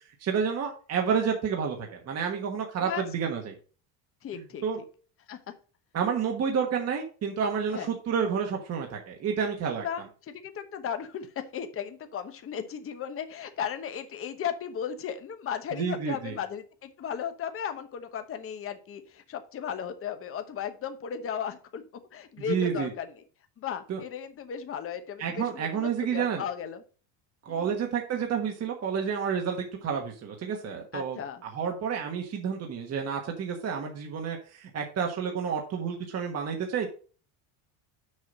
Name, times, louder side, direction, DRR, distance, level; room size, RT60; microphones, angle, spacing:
voice 1, 0.2-3.5 4.6-4.8 5.9-9.8 15.8-16.3 22.4-22.9 23.9-24.0 25.2-26.4 27.4-36.9, right 6 dB, 35° right, 1 dB, 1.2 m, -30 dB
voice 2, 4.2-4.6 5.3-5.4 7.7-7.9 9.8-21.8 22.1-23.2 23.6-26.8 27.5-27.8 30.9-31.4, left 8 dB, 30° left, 8 dB, 0.9 m, -36 dB
6.6 x 5.6 x 5.3 m, 0.38 s
cardioid pair, 155°, 46 cm